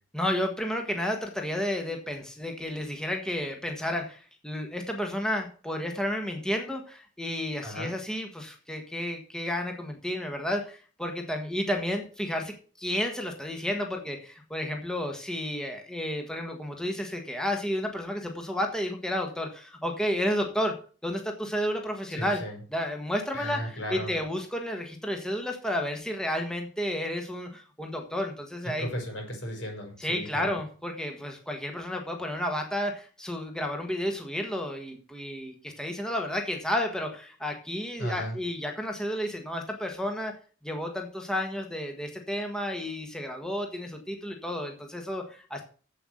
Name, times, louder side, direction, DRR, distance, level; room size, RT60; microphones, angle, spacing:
voice 1, 0.1-22.4 22.7-28.9 30.0-40.3 40.6-45.6, left 1 dB, 5° left, 2 dB, 1.5 m, -32 dB
voice 2, 7.6-7.9 22.1-22.6 23.3-24.2 28.6-30.6 38.0-38.4, equal, 80° left, 2 dB, 5.1 m, -35 dB
8.1 x 7.8 x 7.8 m, 0.41 s
head